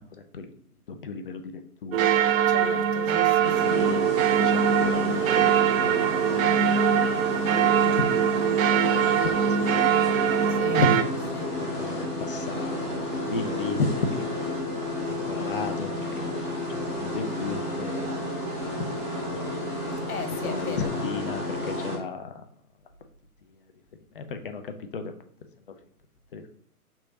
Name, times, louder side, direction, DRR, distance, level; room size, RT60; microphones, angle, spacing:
voice 1, 1.0-2.1 3.4-4.0 4.4-5.6 5.8-6.2 7.0-7.4 7.8-8.5 8.8-9.3 9.6-9.9 10.7-11.3 11.6-14.4 15.2-16.4 16.7-18.1 18.7-19.0 19.3-19.6 20.4-22.4 24.1-25.1 26.3-26.5, left 4 dB, 40° left, 7 dB, 0.4 m, -33 dB
sound 1, 1.9-11.0, right 8 dB, 65° right, 0.5 m, -22 dB
voice 2, 2.5-3.9 10.5-10.9 11.3-11.6 20.1-21.2, left 5 dB, 70° left, 6 dB, 0.8 m, -37 dB
sound 2, 3.4-22.0, left 1 dB, 5° left, 1.6 m, -32 dB
3.5 x 3.1 x 3.8 m, 0.62 s
figure-of-eight pair, 120°, 45 cm